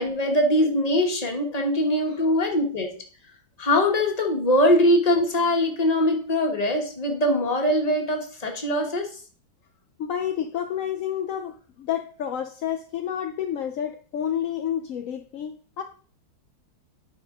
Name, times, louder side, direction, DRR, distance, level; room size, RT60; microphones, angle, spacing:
voice 1, 0.0-2.9 3.6-9.1, left 1 dB, 25° left, 2 dB, 1.3 m, -22 dB
voice 2, 10.0-15.8, left 9 dB, 70° left, 4 dB, 0.8 m, -30 dB
9.7 x 5.4 x 3.7 m, 0.41 s
omnidirectional pair, 2.0 m